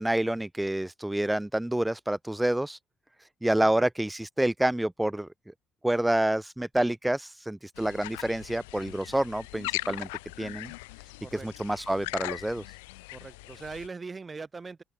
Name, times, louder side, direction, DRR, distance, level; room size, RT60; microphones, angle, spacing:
voice 1, 0.0-2.8 3.2-5.3 5.8-10.1 10.4-10.7 11.3-12.6, right 1 dB, 10° right, 0.7 m, -28 dB
sound 1, 7.8-13.9, left 25 dB, 80° left, 3.0 m, -39 dB
voice 2, 13.1-14.8, right 4 dB, 30° right, 3.4 m, -41 dB
open air
hypercardioid pair, 50°, 0 cm